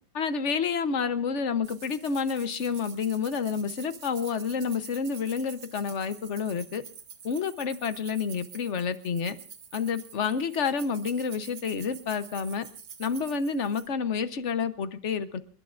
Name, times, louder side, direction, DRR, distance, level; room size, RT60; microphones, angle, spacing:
voice 1, 0.1-6.8 7.2-9.4 9.7-12.7 13.0-15.4, left 6 dB, 50° left, 12 dB, 1.1 m, -29 dB
sound 1, 1.6-13.9, right 7 dB, 80° right, 2.1 m, -47 dB
28.5 x 12.0 x 2.5 m, 0.40 s
omnidirectional pair, 1.9 m